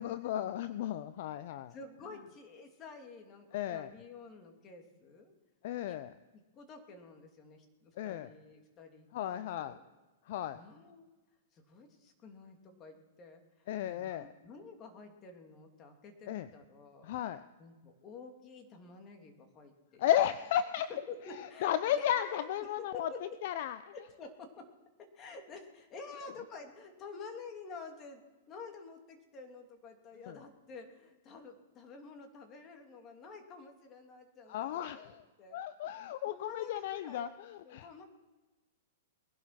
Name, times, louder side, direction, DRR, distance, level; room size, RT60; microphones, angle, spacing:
voice 1, 0.0-1.7 3.5-3.9 5.6-6.1 8.0-8.3 9.1-9.8 10.2-10.6 13.7-14.3 16.3-16.5 17.0-17.4 20.0-20.9 21.3-23.1 23.4-23.8 30.3-30.4 34.5-35.2 35.5-37.9, left 11 dB, 55° left, 14 dB, 0.6 m, -34 dB
voice 2, 1.7-5.3 5.8-6.0 6.5-9.8 10.5-11.1 11.5-17.1 17.6-20.0 21.1-22.7 22.9-23.2 23.9-24.7 25.0-35.6 36.3-37.3 37.6-38.0, left 4 dB, 30° left, 4 dB, 2.7 m, -50 dB
20.0 x 11.5 x 6.0 m, 1.2 s
hypercardioid pair, 115°, 0 cm